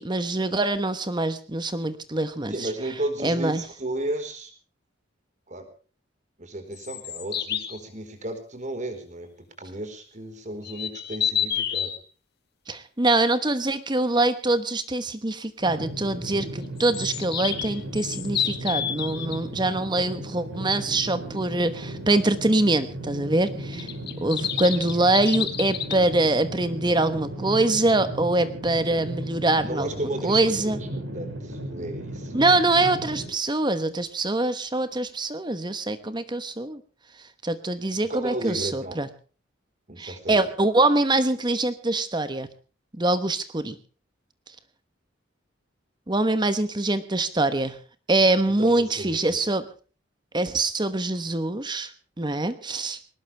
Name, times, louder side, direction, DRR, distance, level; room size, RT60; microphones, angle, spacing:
voice 1, 0.0-2.7 3.2-3.6 12.7-23.9 24.2-29.9 30.2-30.8 32.3-36.8 37.4-39.1 40.0-42.5 43.0-43.8 46.1-47.7 48.1-49.6 50.3-51.9 52.2-53.0, right 2 dB, 20° right, 12 dB, 1.1 m, -24 dB
voice 2, 2.5-4.5 5.5-5.7 6.4-9.3 9.6-11.9 29.6-32.3 38.0-39.0 39.9-40.5 48.6-49.4, right 1 dB, 40° right, 7 dB, 4.5 m, -34 dB
sound 1, 6.7-7.8 10.6-12.0 16.8-19.4 23.7-26.0, left 9 dB, 55° left, 2.0 m, -29 dB
sound 2, 15.6-33.3, right 1 dB, 85° right, 7.4 m, -36 dB
21.5 x 19.0 x 3.4 m, 0.38 s
head